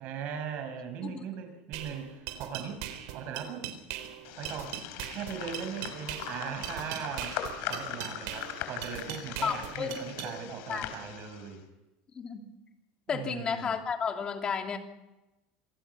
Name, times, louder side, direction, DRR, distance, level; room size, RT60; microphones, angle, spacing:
voice 1, 0.0-2.8 3.1-3.7 4.4-4.8 5.1-11.6 13.1-13.7, right 7 dB, 50° right, 7 dB, 5.6 m, -39 dB
sound 1, 1.7-10.3, right 12 dB, 70° right, 4.0 m, -40 dB
sound 2, 4.2-11.5, left 10 dB, 60° left, 3.7 m, -40 dB
voice 2, 9.4-10.0 10.7-10.9 12.1-12.5 13.1-14.8, left 6 dB, 25° left, 4 dB, 2.9 m, -32 dB
27.0 x 19.5 x 5.8 m, 1.0 s
supercardioid pair, 145°, 4 cm